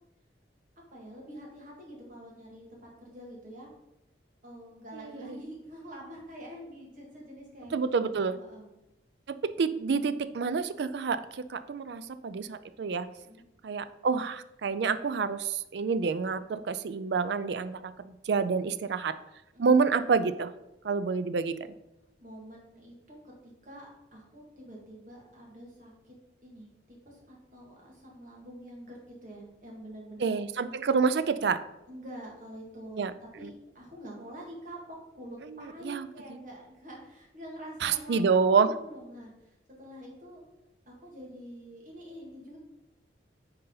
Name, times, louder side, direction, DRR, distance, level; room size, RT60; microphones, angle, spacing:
voice 1, 0.9-3.7 4.4-8.7 13.2-13.4 19.5-19.9 22.2-26.1 26.4-30.4 31.9-33.1 33.4-40.4 40.9-42.6, equal, 45° right, -2 dB, 2.0 m, -46 dB
voice 2, 4.9-5.4 7.7-8.4 9.4-13.1 13.6-19.1 19.6-20.5 20.8-21.6 30.2-31.6 33.0-33.1 33.4-33.5 35.5-36.1 37.8-38.7, right 5 dB, 65° right, 13 dB, 0.4 m, -28 dB
9.4 x 4.1 x 3.9 m, 0.91 s
head